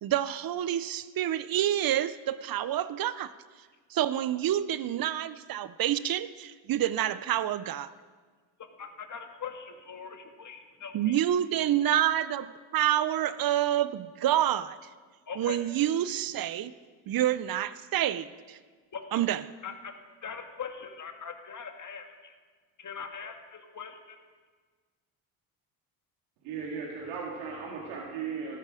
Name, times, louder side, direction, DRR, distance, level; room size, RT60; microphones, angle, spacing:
voice 1, 0.0-3.3 3.9-7.9 10.9-14.8 15.4-16.7 17.1-18.6 19.1-19.4, right 11 dB, 45° right, 16 dB, 0.7 m, -28 dB
voice 2, 8.8-11.2 15.3-15.6 18.9-19.0 19.6-19.9 20.2-22.3 22.8-24.2, left 6 dB, 35° left, 5 dB, 1.9 m, -41 dB
voice 3, 26.4-28.6, right 5 dB, 80° right, -3 dB, 2.4 m, -36 dB
13.5 x 12.0 x 5.0 m, 1.5 s
supercardioid pair, 70°, 50 cm